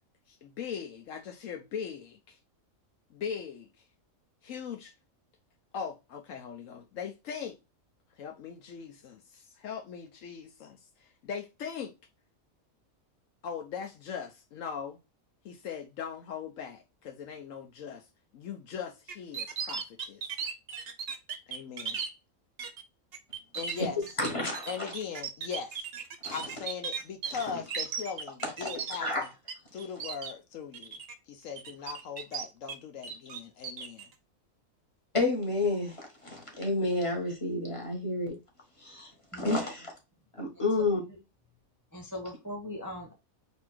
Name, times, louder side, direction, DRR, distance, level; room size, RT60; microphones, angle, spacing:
voice 1, 0.3-2.4 3.1-3.7 4.4-4.9 5.7-7.6 8.2-11.9 13.4-15.0 15.4-18.0 18.3-20.2 21.5-22.0 23.5-24.0 24.7-25.8 26.3-29.3 29.7-31.0 31.3-34.1, left 7 dB, 70° left, 1.0 m, -40 dB
sound 1, 19.1-22.1 22.6-22.8 23.1-29.5 29.8-30.3 30.7-31.1 31.6-32.8 33.0-34.0, right 7 dB, 55° right, 0.8 m, -37 dB
voice 2, 24.2-24.9 26.2-26.4 27.5-27.6 28.4-28.7 29.0-29.2 35.1-38.3 38.8-39.9 40.4-41.0, left 2 dB, 25° left, 1.5 m, -30 dB
voice 3, 39.3-39.7 41.9-43.1, left 1 dB, 15° right, 0.8 m, -40 dB
4.3 x 2.7 x 4.3 m
omnidirectional pair, 1.4 m